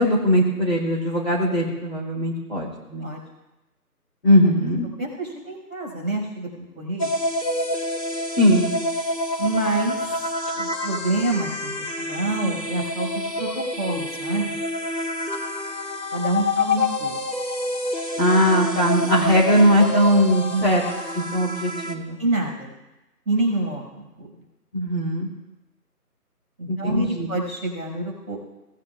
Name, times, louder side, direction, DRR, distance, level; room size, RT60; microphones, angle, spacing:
voice 1, 0.0-3.1 4.2-4.9 8.4-8.7 18.2-20.8 21.1-22.2 24.7-25.3 26.7-27.3, equal, 40° left, -4 dB, 2.4 m, -20 dB
voice 2, 5.0-7.1 9.4-10.0 10.5-13.5 13.8-14.6 16.1-17.2 20.5-20.7 22.2-22.7 23.2-24.3 26.6-28.4, right 2 dB, 5° left, -14 dB, 3.9 m, -27 dB
sound 1, 7.0-21.9, left 1 dB, 90° left, 2.7 m, -28 dB
19.0 x 9.9 x 2.3 m, 1.0 s
figure-of-eight pair, 175°, 47 cm